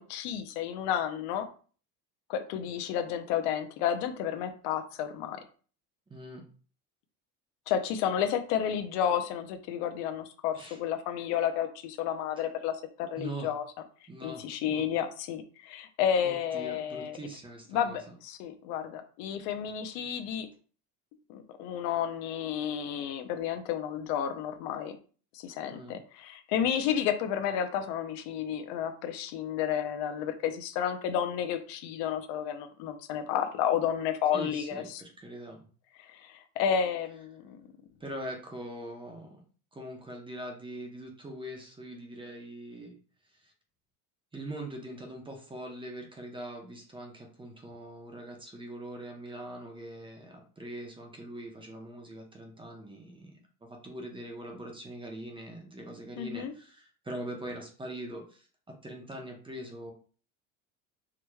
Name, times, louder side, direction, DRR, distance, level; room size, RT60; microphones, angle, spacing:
voice 1, 0.0-1.5 2.3-5.4 7.7-13.6 14.2-17.2 17.7-20.5 21.3-25.0 25.3-35.0 36.0-37.6 56.2-56.5, left 9 dB, 70° left, 7 dB, 0.7 m, -31 dB
voice 2, 6.1-6.4 10.5-10.8 13.2-13.5 14.1-14.9 16.2-18.0 25.7-26.0 34.3-35.6 38.0-39.3 39.7-42.9 43.4-43.5 44.3-53.3 53.6-59.9, right 1 dB, 10° right, 2 dB, 0.8 m, -42 dB
4.8 x 3.0 x 2.3 m, 0.41 s
supercardioid pair, 115°, 43 cm